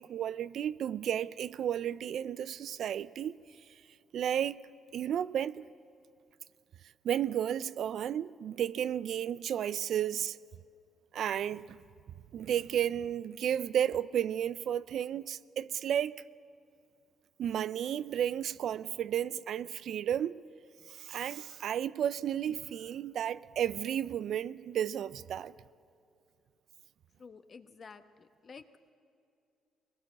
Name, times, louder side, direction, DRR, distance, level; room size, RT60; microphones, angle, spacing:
voice 1, 0.0-3.4 4.1-4.6 4.9-5.7 7.0-10.4 11.1-11.8 12.3-16.2 17.4-20.4 20.9-25.5, right 10 dB, 70° right, 0.4 m, -33 dB
voice 2, 27.2-28.6, left 5 dB, 45° left, 1.2 m, -51 dB
21.5 x 19.0 x 7.3 m
cardioid pair, 90°, 0 cm